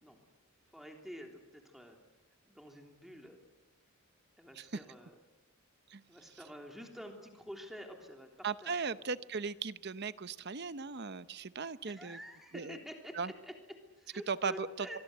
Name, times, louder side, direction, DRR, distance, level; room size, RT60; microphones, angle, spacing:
voice 1, 0.7-2.0 2.5-3.4 4.4-5.1 6.1-8.8 11.8-15.0, equal, ahead, 2 dB, 3.3 m, -48 dB
voice 2, 8.4-12.2 12.5-12.8 13.1-13.3 14.3-15.0, right 5 dB, 50° right, 14 dB, 0.8 m, -37 dB
24.5 x 23.5 x 8.0 m, 1.1 s
head